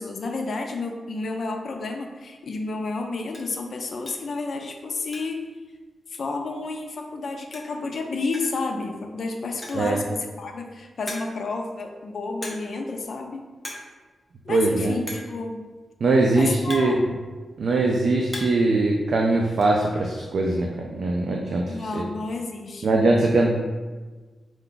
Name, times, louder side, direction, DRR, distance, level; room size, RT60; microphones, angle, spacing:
voice 1, 0.0-5.5 6.1-13.4 14.5-15.6 16.4-17.2 21.6-22.9, left 3 dB, 55° left, 3 dB, 0.5 m, -31 dB
sound 1, 2.4-2.5 2.9-3.0 3.3-3.6 4.1-4.3 4.7-5.5 5.8-5.9 6.1-6.2 7.2-7.3 7.5-7.8 8.3-8.6 9.4-9.9 10.5-10.6 11.1-11.5 12.4-12.8 13.1-13.3 13.6-13.9 14.2-14.3 15.1-15.4 16.2-17.5 17.9-18.7 19.0-19.7, left 1 dB, 15° left, 0.7 m, -38 dB
voice 2, 14.5-15.0 16.0-17.0 17.6-22.0 22.8-23.5, right 2 dB, 60° right, 0 dB, 0.4 m, -21 dB
4.5 x 2.3 x 3.8 m, 1.3 s
wide cardioid pair, 135°, 0 cm